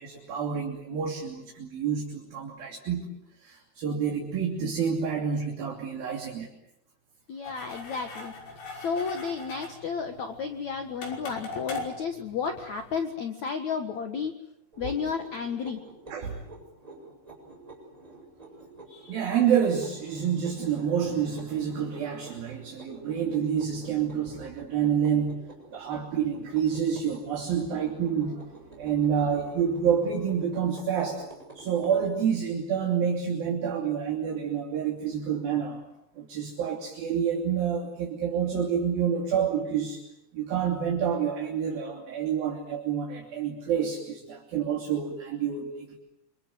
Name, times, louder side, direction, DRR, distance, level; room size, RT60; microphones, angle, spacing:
voice 1, 0.0-6.5 16.1-16.4 18.9-25.4 25.7-31.3 31.5-35.8 36.2-40.0 40.3-46.0, right 7 dB, 60° right, 0 dB, 4.6 m, -28 dB
voice 2, 7.3-8.3 8.7-14.3 14.8-15.8, left 6 dB, 55° left, 5 dB, 2.4 m, -32 dB
sound 1, 7.4-13.0, left 3 dB, 85° left, 7.9 m, -41 dB
sound 2, 14.7-32.2, right 2 dB, 10° right, 7.3 m, -49 dB
27.5 x 27.0 x 7.9 m, 0.80 s
omnidirectional pair, 5.0 m